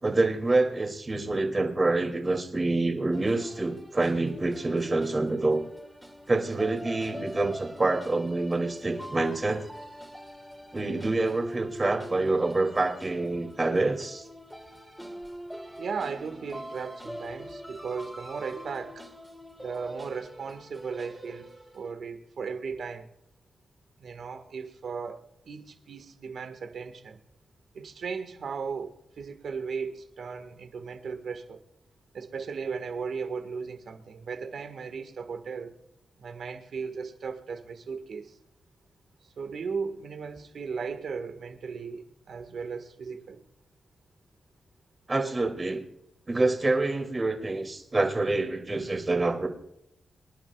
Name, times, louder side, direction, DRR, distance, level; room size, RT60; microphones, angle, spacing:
voice 1, 0.0-5.6 6.3-9.6 10.7-14.3 45.1-45.9 46.3-49.5, right 2 dB, 30° right, 2.8 m, -26 dB
sound 1, 3.1-21.9, equal, ahead, 2.7 m, -43 dB
voice 2, 15.8-19.1 19.6-23.1 24.0-27.2 27.7-31.6 32.1-35.7 36.2-38.4 39.2-43.4, right 5 dB, 75° right, 1.7 m, -36 dB
26.0 x 11.0 x 2.4 m
cardioid pair, 90°, 0 cm